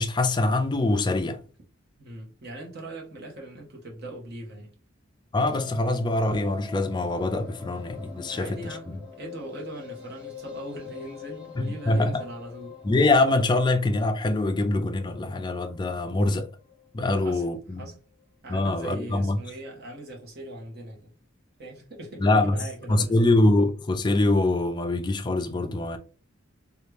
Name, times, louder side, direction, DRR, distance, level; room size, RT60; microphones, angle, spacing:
voice 1, 0.0-1.4 5.3-9.0 11.6-12.1 12.8-16.5 16.9-17.9 18.5-19.4 22.2-22.6 22.9-26.0, left 2 dB, 20° left, 0.4 m, -24 dB
voice 2, 2.0-4.7 8.3-12.8 17.0-17.4 17.8-18.0 18.4-21.1 21.6-23.3, right 1 dB, 50° right, 1.1 m, -40 dB
sound 1, 5.4-17.6 17.8-17.9 18.2-18.3 18.5-18.6, left 7 dB, 5° right, 1.0 m, -44 dB
3.0 x 2.4 x 3.2 m
head